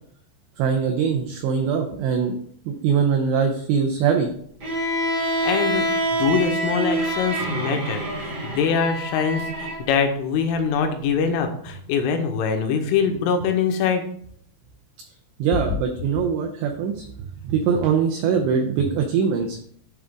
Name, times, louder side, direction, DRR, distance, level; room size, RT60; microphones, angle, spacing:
voice 1, 0.6-2.4 2.7-4.3 15.4-19.6, right 6 dB, 80° right, 2 dB, 2.6 m, -22 dB
Bowed string instrument, 4.6-9.8, right 1 dB, 55° right, 1.1 m, -26 dB
voice 2, 5.4-14.0, left 6 dB, 85° left, 6 dB, 3.2 m, -23 dB
11.0 x 3.8 x 3.6 m, 0.63 s
omnidirectional pair, 5.7 m